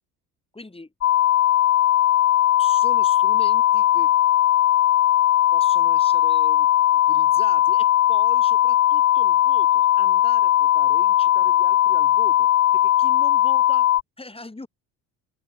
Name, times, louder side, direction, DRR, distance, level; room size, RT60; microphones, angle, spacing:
voice 1, 0.5-0.9 2.6-4.1 5.5-13.9 14.2-14.7, left 2 dB, 15° left, 6.7 m, -41 dB
sound 1, 1.0-14.0, left 12 dB, 40° left, 0.5 m, -18 dB
supercardioid pair, 80°, 38 cm